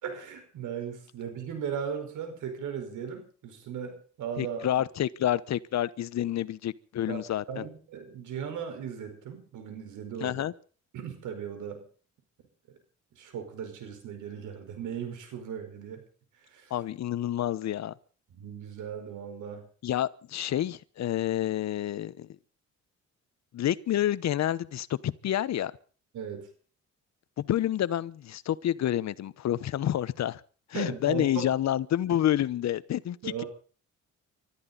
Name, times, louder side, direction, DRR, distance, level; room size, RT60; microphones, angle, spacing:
voice 1, 0.0-4.7 7.1-7.2 7.5-10.4 10.9-11.9 13.1-16.0 16.4-16.7 18.3-19.6 26.1-26.5 30.7-31.5 33.2-33.5, right 7 dB, 80° right, 4.9 m, -37 dB
voice 2, 4.4-7.6 10.2-10.5 16.7-17.9 19.8-22.3 23.5-25.7 27.4-30.4 30.7-33.4, left 12 dB, 65° left, 1.0 m, -29 dB
24.0 x 13.5 x 4.1 m
cardioid pair, 90°, 30 cm